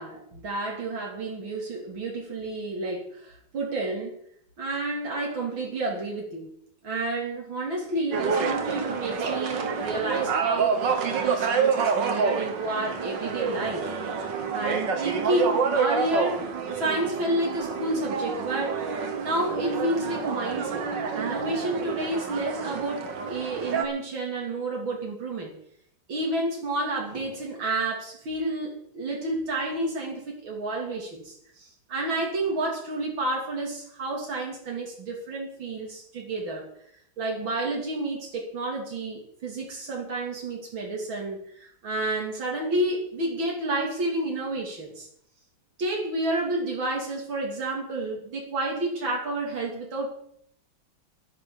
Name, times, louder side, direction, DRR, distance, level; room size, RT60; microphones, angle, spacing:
voice 1, 0.0-4.2 4.6-6.5 6.8-13.9 14.3-16.4 16.8-18.8 19.2-20.9 21.1-25.5 26.1-36.7 37.2-45.1 45.8-50.1, right 2 dB, 85° right, -1 dB, 3.6 m, -30 dB
sound 1, 8.1-23.9, right 5 dB, 65° right, 2.1 m, -28 dB
11.0 x 10.5 x 7.2 m, 0.66 s
omnidirectional pair, 2.1 m